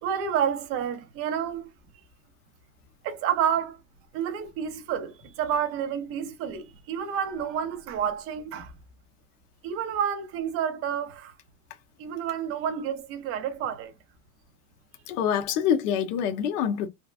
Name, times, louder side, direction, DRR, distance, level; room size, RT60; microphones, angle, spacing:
voice 1, 0.0-1.7 3.0-3.8 4.1-8.7 9.6-11.3 12.0-13.9, right 8 dB, 30° right, 0.6 m, -29 dB
voice 2, 15.1-16.9, left 8 dB, 65° left, 0.9 m, -25 dB
3.2 x 2.1 x 2.4 m
supercardioid pair, 145°, 49 cm